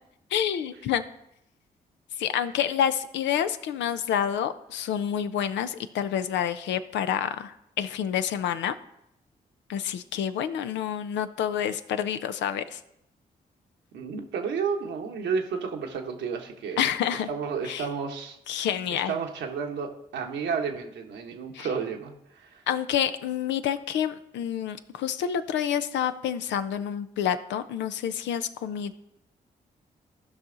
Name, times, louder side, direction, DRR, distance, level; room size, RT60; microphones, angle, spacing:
voice 1, 0.3-1.0 2.2-8.7 9.7-12.8 16.8-17.3 17.6-17.9 18.5-19.1 21.5-21.7 22.7-28.9, left 9 dB, 80° left, 11 dB, 0.6 m, -28 dB
voice 2, 13.9-16.8 17.1-22.6, right 6 dB, 80° right, 3 dB, 1.2 m, -32 dB
14.5 x 5.7 x 3.9 m, 0.81 s
supercardioid pair, 40°, 18 cm